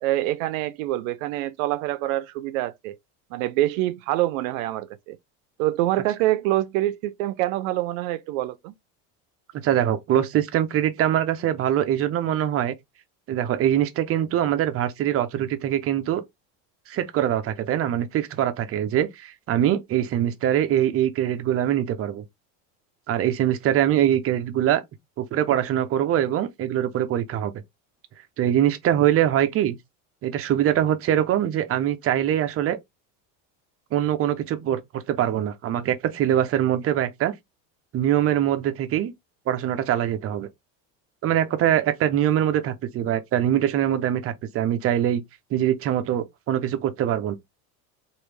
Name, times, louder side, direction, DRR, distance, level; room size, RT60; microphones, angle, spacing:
voice 1, 0.0-3.0 3.3-5.2 5.6-8.7, right 15 dB, 80° right, 0.6 m, -25 dB
voice 2, 9.6-12.7 13.3-16.2 16.9-22.2 23.1-24.8 25.2-27.5 28.4-29.8 30.2-32.8 33.9-37.3 37.9-39.1 39.5-40.5 41.2-45.2 45.5-47.4, right 11 dB, 35° right, 0.6 m, -23 dB
3.1 x 2.6 x 3.3 m
supercardioid pair, 125°, 40 cm